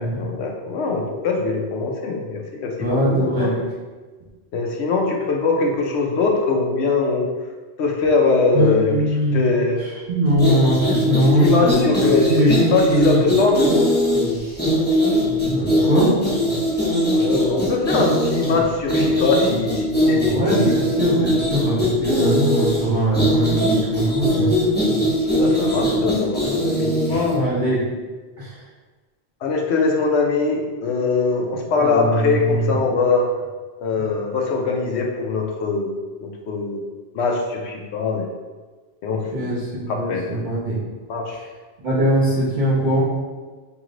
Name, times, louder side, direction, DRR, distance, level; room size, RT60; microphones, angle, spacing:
voice 1, 0.0-3.5 4.5-7.3 7.8-9.0 9.3-9.8 11.1-13.6 17.1-20.7 25.4-27.4 29.4-33.3 33.8-35.9 36.2-36.8 37.1-38.3 39.0-39.6 39.9-40.3 41.1-41.4, left 4 dB, 85° left, 1 dB, 0.9 m, -22 dB
voice 2, 2.8-3.5 8.5-9.4 10.1-11.8 12.3-13.2 15.4-16.1 20.2-24.7 27.0-27.8 28.4-28.5 31.9-32.7 39.3-40.8 41.8-43.0, right 1 dB, 45° right, -6 dB, 1.2 m, -21 dB
sound 1, 10.3-27.4, equal, 10° left, 0.8 m, -20 dB
3.1 x 2.9 x 3.7 m, 1.3 s
omnidirectional pair, 1.1 m